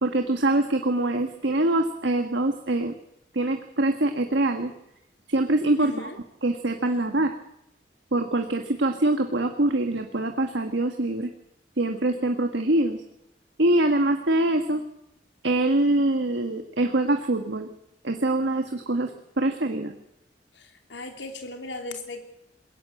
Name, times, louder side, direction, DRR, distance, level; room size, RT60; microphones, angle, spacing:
voice 1, 0.0-2.9 3.3-4.7 5.3-5.9 6.4-7.3 8.1-11.3 11.8-13.0 13.6-14.8 15.4-17.7 18.0-19.1 19.4-19.9, right 2 dB, 85° right, 5 dB, 1.6 m, -24 dB
voice 2, 5.8-6.2 20.5-22.2, left 2 dB, 85° left, 5 dB, 3.1 m, -37 dB
21.5 x 17.5 x 7.7 m, 0.82 s
head